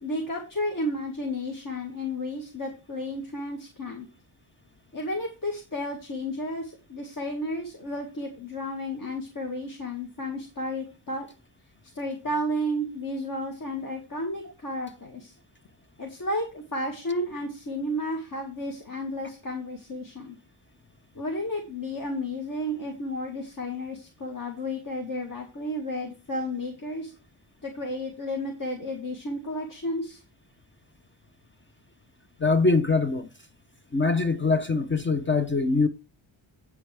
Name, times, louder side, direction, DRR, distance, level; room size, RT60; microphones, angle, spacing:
voice 1, 0.0-4.1 4.9-11.3 11.9-15.3 16.0-20.4 21.1-27.1 27.6-30.2, left 1 dB, 40° left, 2.0 m, -32 dB
voice 2, 32.4-33.3 33.9-35.9, left 3 dB, 25° left, 0.6 m, -23 dB
8.8 x 8.5 x 3.4 m
wide cardioid pair, 150°, 49 cm